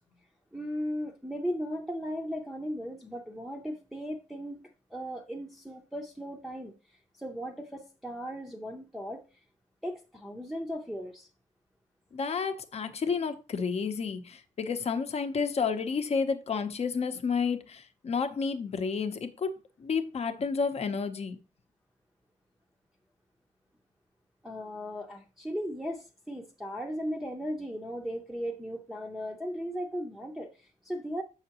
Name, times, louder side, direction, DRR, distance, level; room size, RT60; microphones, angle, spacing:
voice 1, 0.5-4.6 4.9-6.7 7.2-9.2 9.8-11.3 24.4-31.2, equal, ahead, 0.6 m, -37 dB
voice 2, 12.1-19.5 19.8-21.4, left 5 dB, 50° left, 0.8 m, -31 dB
7.7 x 5.7 x 2.9 m
wide cardioid pair, 140°, 14 cm